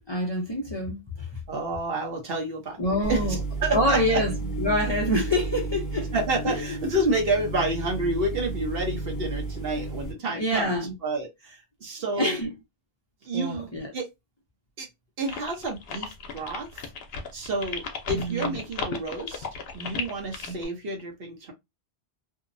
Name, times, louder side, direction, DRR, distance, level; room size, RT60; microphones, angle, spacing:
voice 1, 0.0-1.4 2.8-3.4 3.7-6.1 6.5-6.6 10.3-10.9 12.2-12.5 13.3-13.9 18.1-18.6, left 1 dB, 30° left, 0.5 m, -26 dB
voice 2, 1.5-2.8 3.1-3.2 3.6-4.2 6.1-10.8 11.0-12.4 13.2-14.1 14.8-14.9 15.2-16.8 17.3-19.5 19.7-21.5, right 2 dB, 60° right, 1.0 m, -29 dB
sound 1, 3.0-10.1, right 3 dB, 15° left, 0.9 m, -32 dB
sound 2, 15.3-20.7, left 5 dB, 70° left, 0.8 m, -35 dB
2.7 x 2.0 x 2.5 m
omnidirectional pair, 1.1 m